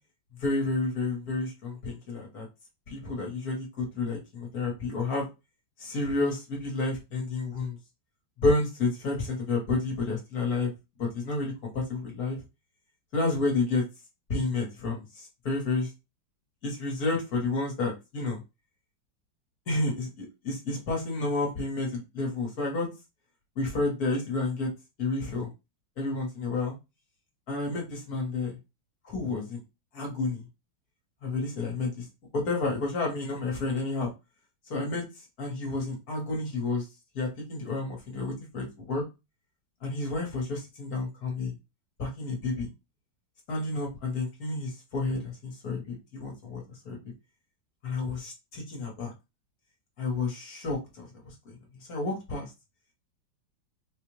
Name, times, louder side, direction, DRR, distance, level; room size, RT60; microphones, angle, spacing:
voice 1, 0.4-2.5 2.9-5.2 5.8-7.8 8.4-10.7 11.0-12.4 13.1-13.8 14.3-15.0 15.4-15.9 16.6-18.4 19.7-22.9 23.6-24.7 25.0-25.5 26.0-26.7 27.5-28.6 29.0-29.6 29.9-30.4 31.2-32.0 32.4-34.1 34.7-35.0 35.4-36.8 37.1-39.0 39.8-41.5 42.0-42.7 43.5-47.0 47.8-49.1 50.0-51.0 51.9-52.5, left 3 dB, 55° left, -1 dB, 1.6 m, -30 dB
4.3 x 2.4 x 3.1 m, 0.25 s
omnidirectional pair, 2.1 m